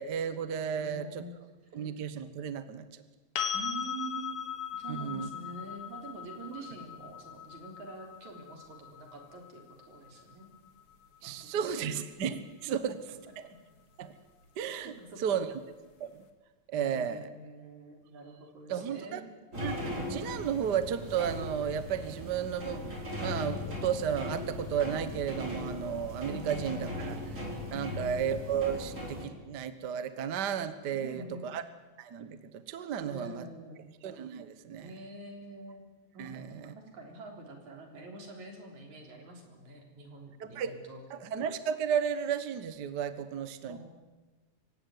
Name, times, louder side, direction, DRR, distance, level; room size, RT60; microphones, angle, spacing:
voice 1, 0.0-1.2 1.7-2.8 4.9-5.3 11.2-12.4 12.7-12.9 13.4-13.5 14.0-14.1 14.6-14.9 15.2-15.5 16.0-16.1 16.7-17.3 18.7-19.2 19.6-22.8 23.2-27.2 27.7-31.6 32.0-33.5 34.0-34.9 36.2-36.7 40.4-40.7 41.1-43.8, right 8 dB, 50° right, 12 dB, 1.3 m, -33 dB
voice 2, 0.6-1.4 1.7-1.9 3.5-10.5 11.2-12.0 12.4-12.9 14.8-15.4 16.7-19.3 26.3-27.1 27.7-28.3 30.9-31.5 33.1-33.9 34.8-35.8 36.1-41.0 43.7-43.8, right 2 dB, 75° right, 3 dB, 5.1 m, -46 dB
sound 1, 3.4-11.2 14.0-14.1, left 8 dB, 55° left, 2.6 m, -39 dB
sound 2, 19.5-29.2, left 1 dB, 25° right, 4.9 m, -38 dB
25.5 x 16.0 x 9.3 m, 1.2 s
omnidirectional pair, 3.3 m